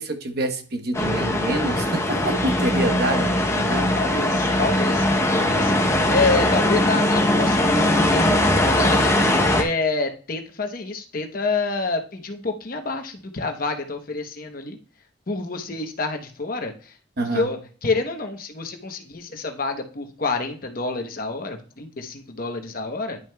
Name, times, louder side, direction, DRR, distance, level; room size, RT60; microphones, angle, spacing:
voice 1, 0.0-4.0 5.5-6.1 17.2-17.5, right 1 dB, 55° right, 5 dB, 1.0 m, -27 dB
sound 1, 0.9-9.6, left 1 dB, 15° left, 0.8 m, -20 dB
voice 2, 3.9-5.1 5.3-5.7 6.1-9.1 9.5-14.8 15.3-16.9 17.2-23.2, left 3 dB, 45° left, 5 dB, 0.9 m, -28 dB
10.5 x 6.1 x 2.3 m, 0.40 s
head